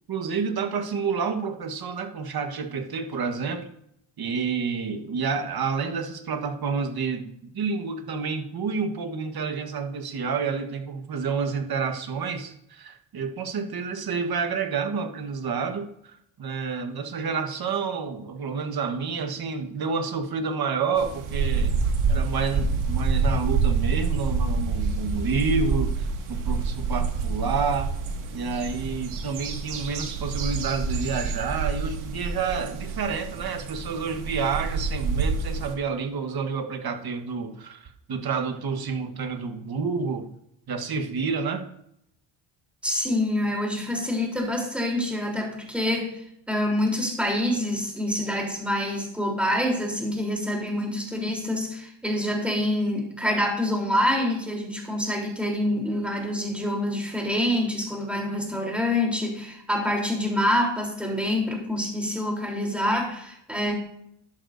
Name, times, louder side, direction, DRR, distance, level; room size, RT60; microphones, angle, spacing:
voice 1, 0.1-3.7 4.2-21.7 22.1-27.9 28.3-40.3 40.7-41.6, right 5 dB, 45° right, 6 dB, 1.5 m, -29 dB
sound 1, 21.0-35.7, right 4 dB, 80° right, 2.1 m, -27 dB
voice 2, 42.8-63.7, left 1 dB, ahead, -1 dB, 3.6 m, -26 dB
13.0 x 11.0 x 2.7 m, 0.76 s
cardioid pair, 105°, 49 cm